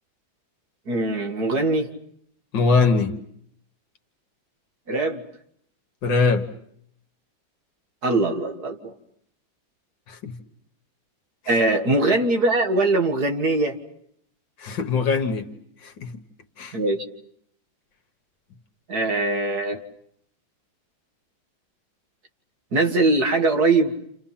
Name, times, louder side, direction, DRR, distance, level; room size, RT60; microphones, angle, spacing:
voice 1, 0.9-1.9 4.9-5.2 8.0-8.9 11.5-13.8 16.7-17.0 18.9-19.8 22.7-23.9, right 2 dB, 50° right, 2.3 m, -21 dB
voice 2, 2.5-3.1 6.0-6.5 10.1-10.4 11.4-11.6 14.6-15.5 15.8-16.1 16.6-16.8, left 4 dB, 65° left, 2.1 m, -22 dB
29.5 x 29.0 x 5.8 m
omnidirectional pair, 2.1 m